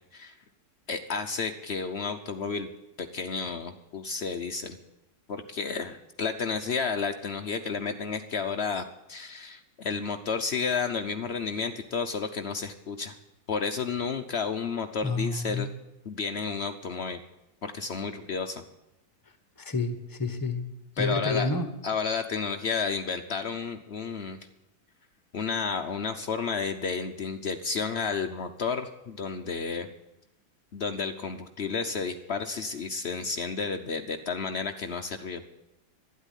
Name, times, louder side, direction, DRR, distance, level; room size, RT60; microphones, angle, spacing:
voice 1, 0.9-2.7 3.0-4.8 5.3-13.1 13.5-15.7 16.1-17.2 17.6-18.6 21.0-21.5 21.8-24.4 25.3-29.9 30.7-35.4, left 5 dB, 85° left, 6 dB, 0.5 m, -31 dB
voice 2, 15.0-15.7 19.6-20.6 21.0-21.7, left 3 dB, 15° left, 10 dB, 0.8 m, -29 dB
12.0 x 11.0 x 9.8 m, 0.91 s
omnidirectional pair, 2.2 m